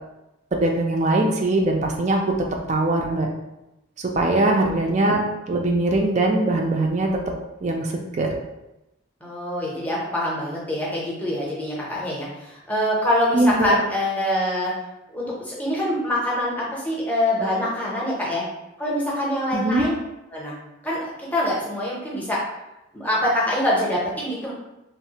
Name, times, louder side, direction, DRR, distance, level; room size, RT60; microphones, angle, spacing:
voice 1, 0.5-2.2 2.7-3.3 4.0-7.1 7.6-8.3 13.3-13.8 19.5-19.8, right 2 dB, 35° right, 2 dB, 0.3 m, -21 dB
voice 2, 4.2-4.8 9.2-14.7 15.1-18.4 18.8-19.9 20.3-20.5 20.8-22.4 22.9-24.5, left 1 dB, 10° left, -5 dB, 0.6 m, -25 dB
3.2 x 2.0 x 2.8 m, 0.94 s
head